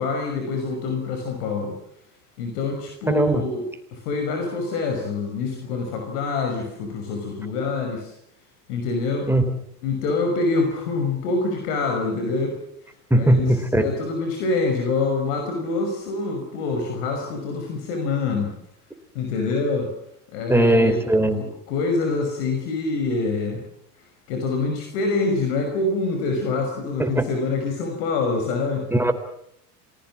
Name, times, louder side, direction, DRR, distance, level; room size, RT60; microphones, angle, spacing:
voice 1, 0.0-1.7 2.4-8.1 8.7-9.3 9.8-12.6 13.1-18.5 19.1-19.9 20.3-21.0 21.3-23.6 24.3-28.8, left 3 dB, 70° left, 4 dB, 5.9 m, -25 dB
voice 2, 3.1-3.4 9.3-9.4 13.1-13.9 20.5-21.4 27.2-27.3 28.9-29.1, right 1 dB, 5° right, 8 dB, 3.9 m, -18 dB
27.5 x 20.0 x 7.4 m, 0.73 s
hypercardioid pair, 90°, 47 cm